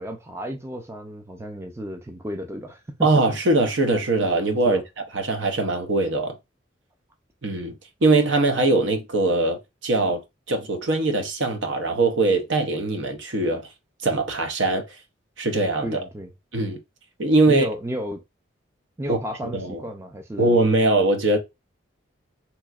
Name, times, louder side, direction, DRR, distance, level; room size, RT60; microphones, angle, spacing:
voice 1, 0.0-3.1 4.6-4.8 15.8-16.3 17.5-18.2 19.0-20.6, equal, 15° right, 0.4 m, -32 dB
voice 2, 3.0-4.8 5.1-6.4 7.4-10.2 10.5-13.6 14.0-14.8 15.4-16.0 16.5-16.8 17.2-17.7 19.1-19.2 19.5-19.8 20.4-21.4, right 2 dB, 70° right, 0.7 m, -21 dB
3.5 x 3.0 x 2.3 m
head